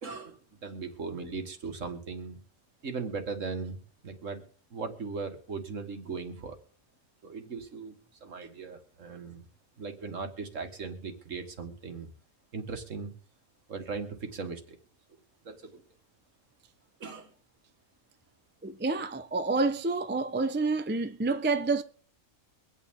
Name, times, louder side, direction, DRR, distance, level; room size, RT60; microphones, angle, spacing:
voice 1, 0.0-2.4 2.8-4.4 4.7-6.6 7.2-7.9 8.2-9.5 9.8-12.1 12.5-13.1 13.7-14.8 15.4-15.8 17.0-17.3, right 4 dB, 65° right, 2.0 m, -38 dB
voice 2, 18.6-21.8, right 3 dB, 15° right, 0.4 m, -28 dB
23.5 x 8.8 x 3.7 m
omnidirectional pair, 1.4 m